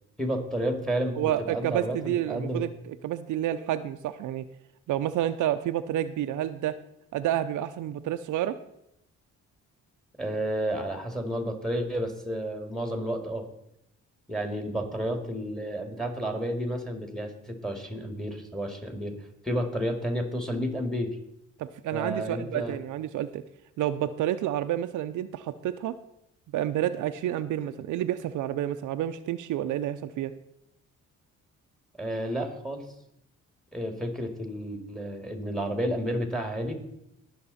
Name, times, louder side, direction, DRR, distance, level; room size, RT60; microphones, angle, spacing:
voice 1, 0.2-2.6 10.2-13.5 14.3-19.2 19.4-21.2 21.9-22.8 32.0-32.9 33.7-36.8, equal, ahead, 5 dB, 2.3 m, -31 dB
voice 2, 1.2-4.4 4.9-6.8 7.1-8.6 21.6-23.4 23.8-26.0 26.5-30.3, right 12 dB, 75° right, 10 dB, 0.6 m, -29 dB
18.5 x 6.7 x 4.2 m, 0.81 s
cardioid pair, 90°, 30 cm